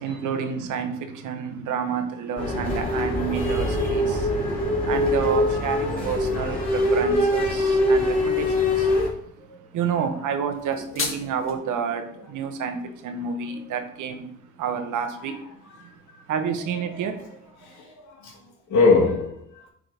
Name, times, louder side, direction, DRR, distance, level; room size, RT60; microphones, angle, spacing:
voice 1, 0.0-4.4 4.8-8.9 9.4-9.5 9.7-15.4 15.8-16.0 16.3-17.3, right 6 dB, 80° right, 1.1 m, -29 dB
sound 1, 2.4-9.1, left 1 dB, 30° left, 3.0 m, -23 dB
voice 2, 7.6-8.5 9.5-9.6 10.9-11.3 15.2-15.4 15.8-16.2 16.9-17.0 17.6-19.7, left 4 dB, 70° left, 1.9 m, -26 dB
sound 2, 10.5-11.5, left 4 dB, 45° left, 1.7 m, -32 dB
9.5 x 3.8 x 3.9 m
cardioid pair, 90°, 30 cm